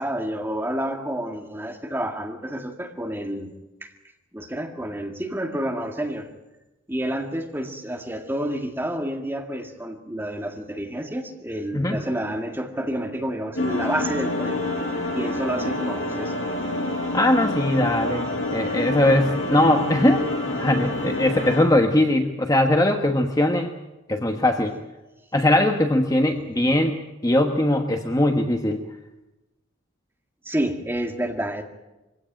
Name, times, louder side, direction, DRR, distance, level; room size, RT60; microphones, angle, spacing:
voice 1, 0.0-3.5 3.8-3.9 4.3-6.3 6.9-14.7 15.1-16.3 26.6-26.8 30.5-31.6, right 1 dB, 10° right, 3 dB, 2.0 m, -29 dB
sound 1, 13.6-21.6, left 2 dB, 65° left, 7.9 m, -27 dB
voice 2, 17.1-18.3 18.5-23.7 24.1-24.8 25.3-28.8, left 1 dB, 20° left, 4 dB, 1.2 m, -20 dB
23.5 x 16.5 x 8.9 m, 1.0 s
head